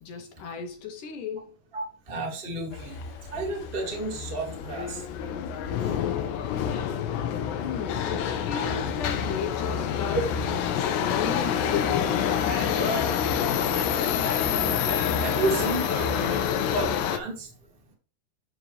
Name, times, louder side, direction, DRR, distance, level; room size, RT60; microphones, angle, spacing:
voice 1, 0.0-1.5 7.6-10.5 10.8-12.8, left 7 dB, 70° left, 2.0 m, -35 dB
voice 2, 1.7-3.0 3.3-5.0 5.8-5.9 11.2-11.3 13.6-13.8 14.7-16.1 16.6-17.5, right 2 dB, 20° right, 1.6 m, -32 dB
Subway metro underground, 2.7-17.2, left 8 dB, 90° left, 3.1 m, -27 dB
Animal, 11.6-16.6, right 1 dB, 55° right, 3.2 m, -37 dB
12.0 x 5.0 x 3.3 m
omnidirectional pair, 4.8 m